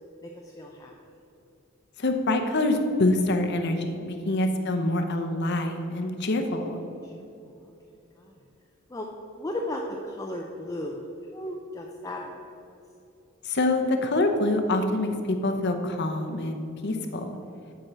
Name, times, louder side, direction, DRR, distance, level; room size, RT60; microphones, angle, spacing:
voice 1, 0.2-0.9 4.3-4.8 7.0-7.7 8.2-8.3 8.9-9.1 9.4-11.0 11.3-12.5 17.5-17.7, left 1 dB, 15° left, 0 dB, 0.5 m, -36 dB
voice 2, 2.0-6.8 13.4-17.4, left 2 dB, 55° left, 5 dB, 0.8 m, -26 dB
8.7 x 4.6 x 6.7 m, 2.8 s
head